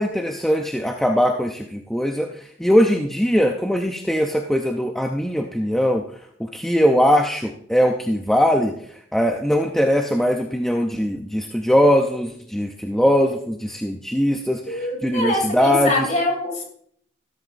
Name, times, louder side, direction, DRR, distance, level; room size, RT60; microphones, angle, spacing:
voice 1, 0.0-6.0 6.5-8.7 9.1-16.1, equal, ahead, 2 dB, 0.5 m, -20 dB
voice 2, 14.7-16.6, left 1 dB, 40° left, 2 dB, 2.8 m, -24 dB
14.0 x 13.0 x 2.5 m, 0.64 s
head